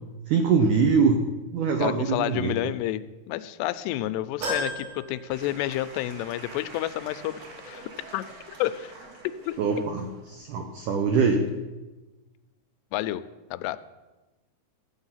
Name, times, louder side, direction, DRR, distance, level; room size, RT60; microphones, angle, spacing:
voice 1, 0.3-1.2 1.5-2.5 9.6-11.4, right 5 dB, 90° right, 4 dB, 1.8 m, -23 dB
voice 2, 1.8-3.0 3.3-7.4 7.7-7.8 8.1-8.2 8.6-8.9 9.5-9.6 12.9-13.2 13.5-13.8, left 14 dB, 90° left, 13 dB, 2.7 m, -29 dB
sound 1, 4.4-6.1 6.5-6.6 7.8-7.9, left 1 dB, 70° right, 5.6 m, -34 dB
Applause / Crowd, 5.3-11.6, right 2 dB, 50° right, 2.2 m, -47 dB
14.0 x 8.1 x 5.6 m, 1.1 s
omnidirectional pair, 4.8 m